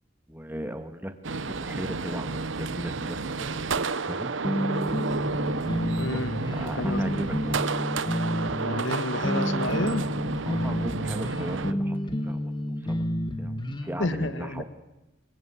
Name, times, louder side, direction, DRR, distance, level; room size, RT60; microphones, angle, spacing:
voice 1, 0.3-4.3 6.0-7.6 10.4-12.4 12.8-13.1 13.4-14.6, right 1 dB, 10° right, 7 dB, 1.8 m, -37 dB
sound 1, 1.2-11.7, right 4 dB, 80° right, 0.9 m, -31 dB
sound 2, 4.4-14.0, equal, 25° left, 1.6 m, -30 dB
voice 2, 6.0-6.4 6.7-7.1 8.6-10.1 14.0-14.6, left 2 dB, 75° left, 11 dB, 1.6 m, -30 dB
25.0 x 21.5 x 8.3 m, 0.99 s
head